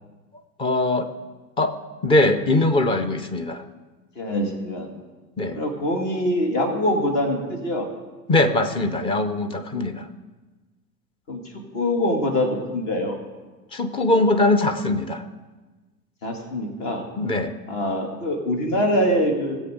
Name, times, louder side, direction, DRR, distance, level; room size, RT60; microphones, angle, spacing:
voice 1, 0.6-1.1 1.6-1.7 2.0-3.6 5.4-5.6 8.3-10.1 13.7-15.2 17.2-17.5, left 2 dB, 10° left, 9 dB, 0.5 m, -21 dB
voice 2, 4.2-4.9 5.5-7.9 11.3-11.4 11.7-13.2 16.2-17.0 17.7-19.6, left 1 dB, 45° left, 2 dB, 2.4 m, -24 dB
19.0 x 8.2 x 3.8 m, 1.3 s
figure-of-eight pair, 90°, 50 cm